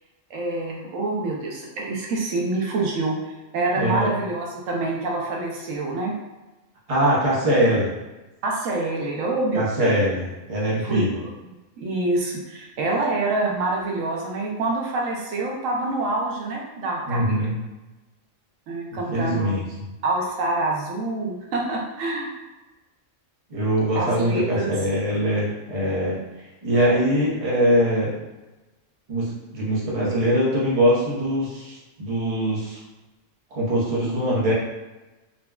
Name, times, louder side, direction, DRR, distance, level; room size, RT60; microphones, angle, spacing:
voice 1, 0.3-6.1 8.4-10.0 10.8-11.3 11.8-17.4 18.7-19.5 20.0-22.3 23.9-24.7, right 2 dB, 85° right, -2 dB, 1.0 m, -26 dB
voice 2, 3.8-4.1 6.9-7.9 9.5-11.2 17.1-17.6 18.9-19.9 23.5-26.2 26.6-28.2 29.1-32.8 33.5-34.5, equal, 30° right, -6 dB, 0.8 m, -22 dB
3.9 x 2.2 x 2.2 m, 1.1 s
omnidirectional pair, 1.3 m